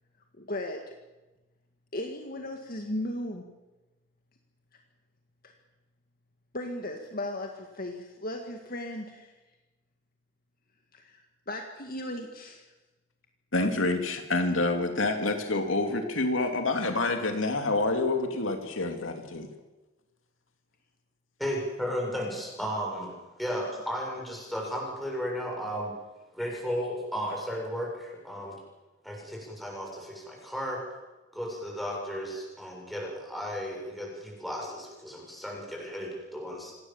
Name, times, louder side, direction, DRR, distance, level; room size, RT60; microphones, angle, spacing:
voice 1, 0.4-0.8 1.9-3.4 6.5-9.3 10.9-11.2 11.5-12.6 32.3-32.5, left 1 dB, 45° left, 3 dB, 2.1 m, -36 dB
voice 2, 13.5-19.5, left 2 dB, 75° left, 5 dB, 2.6 m, -27 dB
voice 3, 21.4-26.0 26.3-28.6 29.0-30.8 31.3-36.7, equal, ahead, -2 dB, 7.2 m, -34 dB
26.5 x 19.0 x 7.4 m, 1.1 s
head